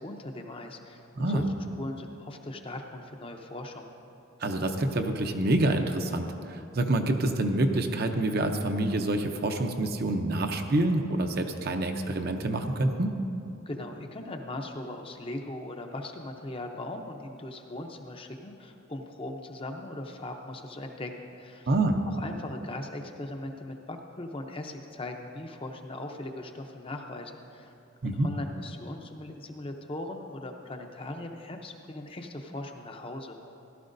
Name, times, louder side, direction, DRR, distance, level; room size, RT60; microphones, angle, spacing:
voice 1, 0.0-1.4 1.8-3.9 13.7-21.7 22.1-27.7 28.0-33.4, left 1 dB, 25° left, 4 dB, 0.6 m, -39 dB
voice 2, 4.4-13.2 21.7-22.0 28.0-28.3, right 1 dB, 50° right, 5 dB, 0.7 m, -27 dB
16.0 x 11.5 x 2.6 m, 2.6 s
head